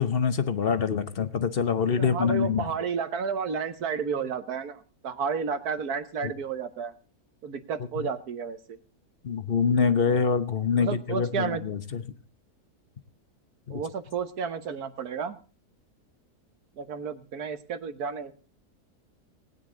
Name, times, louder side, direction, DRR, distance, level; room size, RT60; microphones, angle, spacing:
voice 1, 0.0-2.7 6.2-6.3 8.0-8.1 9.2-12.0 13.7-13.8, left 6 dB, 45° left, 12 dB, 1.0 m, -25 dB
voice 2, 1.9-6.9 7.4-8.8 10.8-11.6 13.7-15.4 16.8-18.3, right 6 dB, 80° right, 11 dB, 1.7 m, -32 dB
19.0 x 9.4 x 3.9 m, 0.38 s
omnidirectional pair, 1.6 m